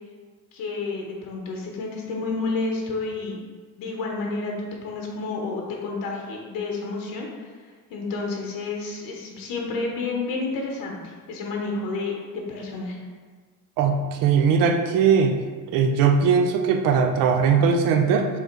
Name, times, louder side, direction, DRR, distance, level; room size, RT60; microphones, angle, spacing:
voice 1, 0.5-3.4 3.8-13.0, left 3 dB, 85° left, 0 dB, 1.2 m, -30 dB
voice 2, 13.8-15.4 15.7-18.3, right 6 dB, 75° right, 4 dB, 0.6 m, -19 dB
7.0 x 3.0 x 4.6 m, 1.5 s
cardioid pair, 150°, 34 cm